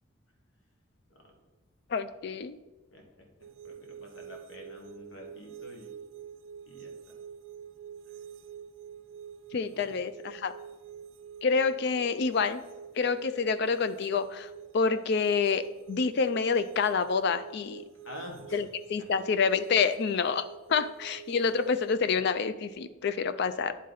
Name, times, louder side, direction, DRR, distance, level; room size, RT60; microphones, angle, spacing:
voice 1, 1.9-2.6 9.5-10.5 11.4-12.6 13.0-14.5 14.7-17.8 18.5-23.8, left 5 dB, 55° left, 13 dB, 0.4 m, -28 dB
voice 2, 2.9-3.3 3.6-6.0 6.7-7.1 9.5-9.9 18.0-18.7 19.0-19.2, left 1 dB, 80° left, 1 dB, 1.5 m, -47 dB
sound 1, 3.4-22.2, right 8 dB, 80° right, 0.4 m, -47 dB
10.0 x 3.7 x 4.0 m, 1.1 s
head